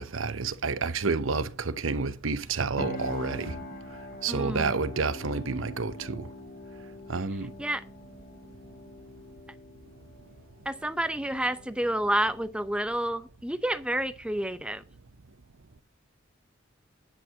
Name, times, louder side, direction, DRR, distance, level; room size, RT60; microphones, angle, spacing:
voice 1, 0.0-3.5 4.2-6.2 7.1-7.5, right 4 dB, 85° right, 0.8 m, -29 dB
sound 1, 2.8-12.5, left 2 dB, 50° left, 1.2 m, -44 dB
voice 2, 4.3-4.7 7.6-7.8 10.7-14.8, right 1 dB, 5° right, 0.7 m, -29 dB
10.5 x 4.7 x 7.1 m
head